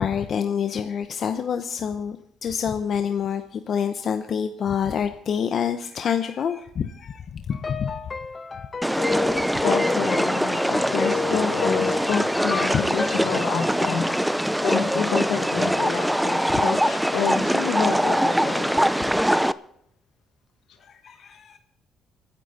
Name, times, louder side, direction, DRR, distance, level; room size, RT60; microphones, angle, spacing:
voice 1, 0.0-2.2 2.4-7.9 16.5-16.6 20.8-21.6, left 7 dB, 60° left, 0.8 m, -27 dB
sound 1, 7.5-13.3, left 5 dB, 35° left, 1.1 m, -30 dB
sound 2, 8.8-19.5, equal, ahead, 0.5 m, -23 dB
voice 2, 9.6-14.3 14.6-18.7, left 6 dB, 85° left, 2.0 m, -28 dB
27.0 x 10.0 x 4.2 m
cardioid pair, 90°, 0 cm